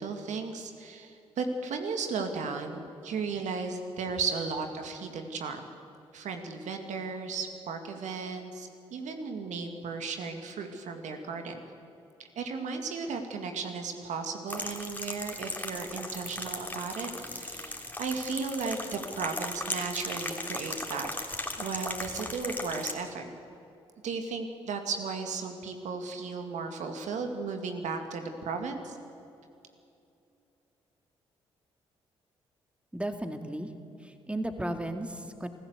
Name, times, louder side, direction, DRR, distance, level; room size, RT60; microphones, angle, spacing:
voice 1, 0.0-5.6 6.1-11.6 12.2-21.1 21.6-23.3 24.0-29.0, right 4 dB, 65° right, 5 dB, 2.2 m, -35 dB
sound 1, 14.5-22.9, left 1 dB, 15° left, 3.2 m, -37 dB
voice 2, 32.9-33.7 34.0-35.5, right 1 dB, 10° right, 6 dB, 2.3 m, -34 dB
27.0 x 15.0 x 8.2 m, 2.7 s
hypercardioid pair, 45°, 13 cm